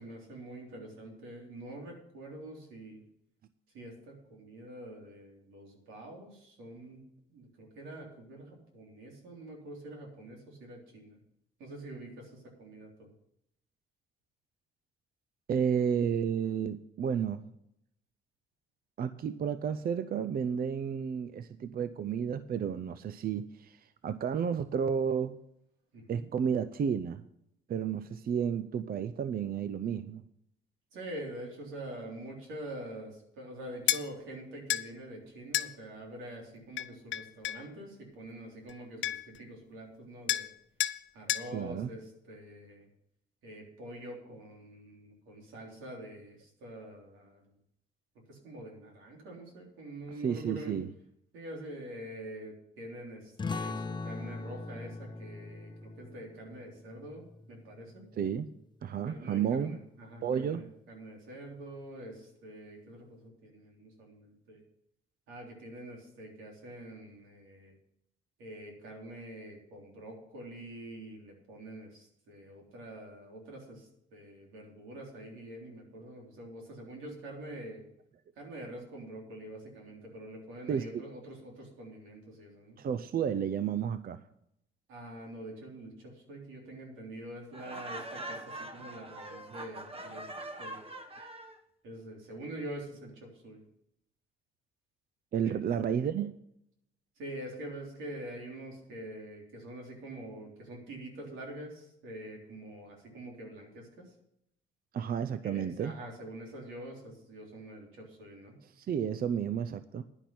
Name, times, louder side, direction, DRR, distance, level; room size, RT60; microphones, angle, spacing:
voice 1, 0.0-3.0 3.7-7.0 7.3-11.2 11.6-13.1 25.9-26.2 30.9-40.5 41.1-42.9 43.4-47.4 48.3-50.8 51.3-58.1 59.1-64.6 65.3-67.7 68.4-77.8 78.4-82.8 84.9-90.3 90.6-90.8 91.8-93.6 95.4-95.5 97.2-104.1 105.4-108.6, right 1 dB, 90° right, 0 dB, 3.5 m, -45 dB
voice 2, 15.5-17.4 19.0-25.4 26.1-27.2 27.7-30.2 41.5-41.9 50.1-50.9 58.2-58.5 58.8-59.8 60.2-60.6 80.7-81.0 82.8-84.2 95.3-96.3 104.9-105.9 108.6-110.0, right 7 dB, 50° right, 13 dB, 0.5 m, -32 dB
sound 1, 33.9-34.0 34.7-34.9 35.5-35.7 36.8-37.6 38.7-38.8 39.0-39.4 40.3-40.5 40.8-41.0 41.3-41.5, left 13 dB, 70° left, 0.5 m, -30 dB
sound 2, 53.4-58.6, left 3 dB, 25° left, 0.6 m, -41 dB
Laughter, 87.5-91.6, right 1 dB, 30° right, 1.2 m, -43 dB
11.0 x 5.9 x 8.5 m, 0.76 s
cardioid pair, 90°, 20 cm